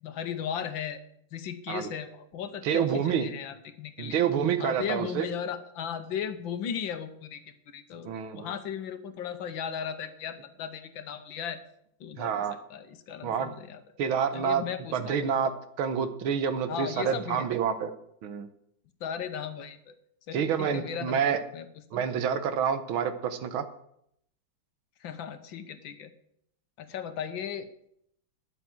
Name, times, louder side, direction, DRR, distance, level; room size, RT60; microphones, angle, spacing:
voice 1, 0.0-1.0 1.3-4.2 4.6-11.6 12.0-12.4 12.7-13.8 14.3-15.2 16.7-17.5 19.0-19.9 20.3-21.7 21.9-22.0 25.0-26.1 26.8-27.7, left 8 dB, 70° left, 10 dB, 1.7 m, -36 dB
voice 2, 2.6-3.3 4.0-5.3 8.1-8.5 12.2-12.6 13.2-13.5 14.0-14.6 14.9-15.5 15.8-17.9 18.2-18.5 20.3-21.4 21.9-23.7, right 7 dB, 80° right, 10 dB, 1.8 m, -28 dB
10.5 x 8.3 x 7.7 m, 0.74 s
omnidirectional pair, 2.2 m